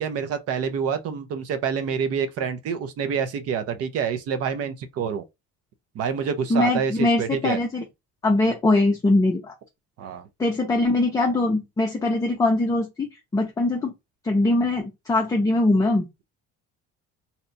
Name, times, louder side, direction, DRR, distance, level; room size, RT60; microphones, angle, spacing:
voice 1, 0.0-5.2 6.0-7.6 10.0-10.3, right 7 dB, 55° right, 0.5 m, -27 dB
voice 2, 6.5-7.8 8.2-9.5 10.4-13.9 14.2-16.1, left 2 dB, 10° left, 0.5 m, -22 dB
2.7 x 2.2 x 3.9 m
cardioid pair, 175°, 29 cm